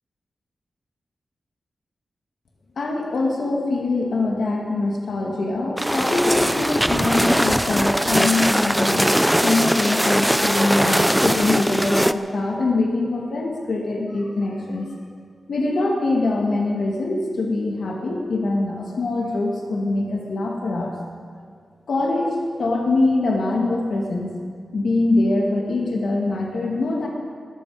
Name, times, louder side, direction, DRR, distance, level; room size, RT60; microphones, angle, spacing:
voice 1, 2.8-9.1 9.4-14.9 15.5-20.9 21.9-24.3 24.7-27.1, left 2 dB, 65° left, 0 dB, 2.0 m, -23 dB
sound 1, 5.8-12.1, equal, ahead, 0.4 m, -20 dB
20.0 x 14.0 x 4.9 m, 2.1 s
wide cardioid pair, 175°, 0 cm